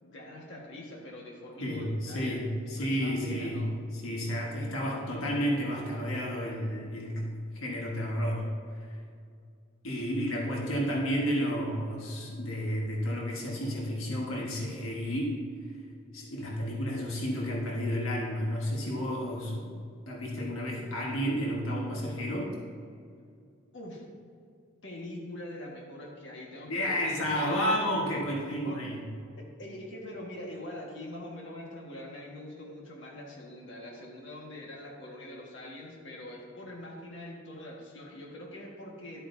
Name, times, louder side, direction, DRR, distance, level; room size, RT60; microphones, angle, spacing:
voice 1, 0.0-2.5 2.8-3.7 10.2-10.8 23.7-24.0 24.8-27.6 28.6-28.8 29.4-39.3, left 1 dB, 60° left, -2 dB, 1.6 m, -43 dB
voice 2, 1.6-3.6 3.9-7.3 7.5-8.4 9.8-15.4 16.1-19.7 20.1-22.5 26.7-29.0, equal, 85° left, -2 dB, 1.4 m, -31 dB
12.0 x 8.2 x 2.7 m, 2.3 s
head